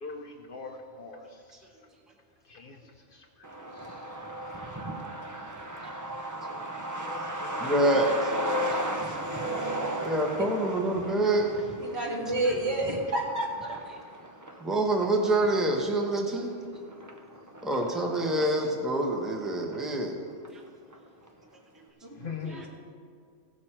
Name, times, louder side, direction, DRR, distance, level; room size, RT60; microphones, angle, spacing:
voice 1, 0.0-1.2 2.5-2.8 7.1-7.7 22.2-22.7, left 5 dB, 55° left, 4 dB, 0.8 m, -40 dB
Truck, 3.4-18.6 18.9-19.0 19.3-20.2 20.5-20.6 20.9-21.3, right 1 dB, 25° right, 0.4 m, -36 dB
voice 2, 7.6-8.3 10.0-11.5 14.6-16.5 17.6-20.2 20.5-20.6 22.5-22.7, right 1 dB, ahead, 1 dB, 0.9 m, -26 dB
voice 3, 11.8-13.8 22.0-22.7, right 1 dB, 60° right, -2 dB, 1.9 m, -30 dB
16.0 x 6.5 x 4.4 m, 2.2 s
omnidirectional pair, 1.3 m